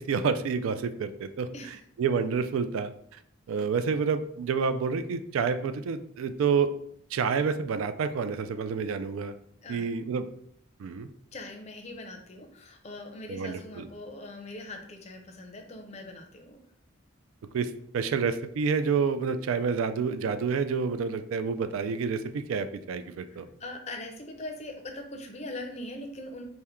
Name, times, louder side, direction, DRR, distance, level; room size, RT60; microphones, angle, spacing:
voice 1, 0.0-1.5 2.0-2.9 3.5-6.7 7.1-9.3 9.7-10.3 10.8-11.1 13.3-13.9 17.5-23.5, right 5 dB, 80° right, 11 dB, 0.3 m, -28 dB
voice 2, 11.3-16.6 23.3-26.4, left 2 dB, 30° left, 4 dB, 0.5 m, -41 dB
4.3 x 2.1 x 3.5 m, 0.68 s
head